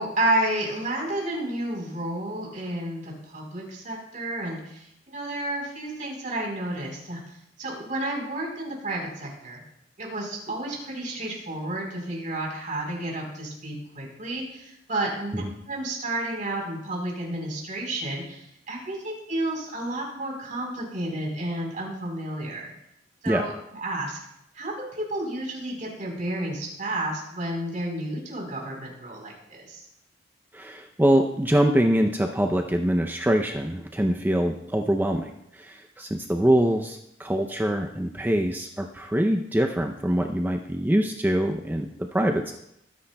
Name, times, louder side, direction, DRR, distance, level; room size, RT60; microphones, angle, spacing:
voice 1, 0.0-7.2 7.6-9.6 10.0-22.7 23.2-23.5 23.8-24.2 24.5-29.8, right 1 dB, 45° right, -1 dB, 4.0 m, -31 dB
voice 2, 30.5-42.5, right 1 dB, 10° right, 3 dB, 0.5 m, -24 dB
21.5 x 9.9 x 2.3 m, 0.80 s
head